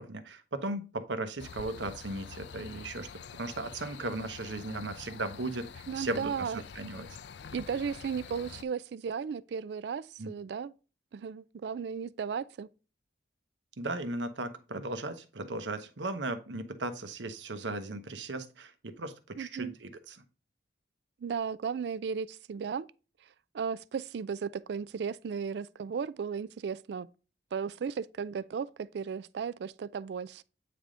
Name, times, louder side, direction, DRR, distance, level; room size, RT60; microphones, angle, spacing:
voice 1, 0.0-3.1 3.4-6.5 6.7-7.1 10.2-10.3 13.8-20.2, right 2 dB, 80° right, 0.9 m, -37 dB
sound 1, 1.4-8.6, left 6 dB, 70° left, 0.4 m, -47 dB
voice 2, 5.9-6.6 7.5-10.7 11.1-12.7 19.4-19.7 21.2-22.9 23.5-27.1 27.5-30.4, right 6 dB, 65° right, 0.3 m, -35 dB
8.6 x 3.4 x 3.7 m
head